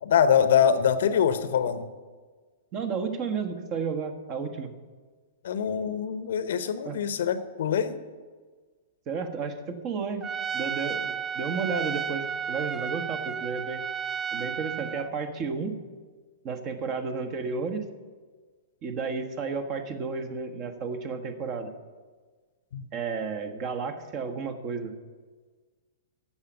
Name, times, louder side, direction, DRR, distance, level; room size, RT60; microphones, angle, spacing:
voice 1, 0.0-1.9 5.4-8.0 22.7-22.9, left 8 dB, 60° left, 12 dB, 0.8 m, -24 dB
voice 2, 2.7-4.7 6.8-7.0 9.1-10.3 10.5-13.8 14.3-15.8 16.4-17.8 18.8-21.7 22.9-24.9, right 5 dB, 35° right, 8 dB, 1.3 m, -32 dB
Trumpet, 10.2-15.1, right 7 dB, 15° right, 0.3 m, -32 dB
14.5 x 6.0 x 8.1 m, 1.5 s
figure-of-eight pair, 105°, 0 cm